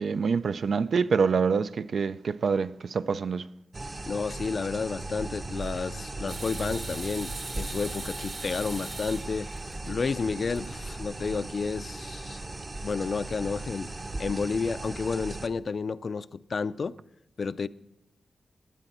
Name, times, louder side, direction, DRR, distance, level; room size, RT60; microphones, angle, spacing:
voice 1, 0.0-3.4, right 5 dB, 75° right, 0.4 m, -26 dB
sound 1, 3.7-15.5, right 2 dB, 35° right, 0.8 m, -38 dB
voice 2, 4.1-9.5 9.9-12.4 12.8-13.9 14.2-16.9 17.4-17.7, left 5 dB, 60° left, 0.4 m, -31 dB
sound 2, 6.3-10.2 10.6-10.7 11.8-11.9, right 3 dB, 55° right, 1.5 m, -40 dB
16.5 x 10.0 x 4.2 m
wide cardioid pair, 105°, 0 cm